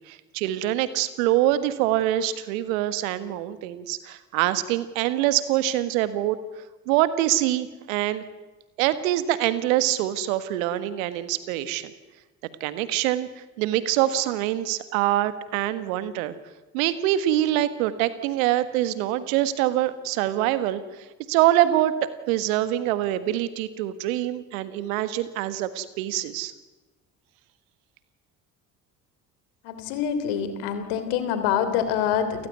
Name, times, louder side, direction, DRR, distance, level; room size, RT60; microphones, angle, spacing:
voice 1, 0.1-6.4 6.9-8.2 8.8-11.9 12.6-16.3 16.7-20.8 21.3-26.5, right 13 dB, 75° right, 13 dB, 1.6 m, -24 dB
voice 2, 29.6-32.5, left 8 dB, 70° left, 10 dB, 3.2 m, -26 dB
29.5 x 15.5 x 9.4 m, 1.2 s
hypercardioid pair, 55°, 42 cm